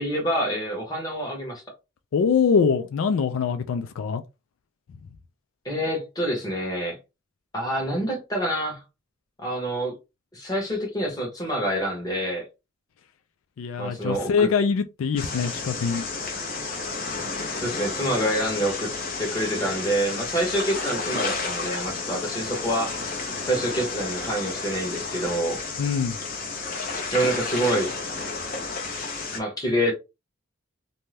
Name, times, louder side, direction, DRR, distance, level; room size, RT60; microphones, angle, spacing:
voice 1, 0.0-1.6 5.6-7.0 7.5-8.8 9.4-9.9 10.3-12.5 13.8-14.5 15.4-15.5 17.6-18.9 19.2-22.9 23.4-25.6 27.1-27.9 29.3-29.9, right 1 dB, 20° left, 1.0 m, -27 dB
voice 2, 2.1-4.2 13.6-16.0 25.8-26.2, left 6 dB, 80° left, 0.3 m, -23 dB
sound 1, 15.2-29.4, left 4 dB, 45° left, 0.8 m, -31 dB
2.6 x 2.2 x 3.2 m
head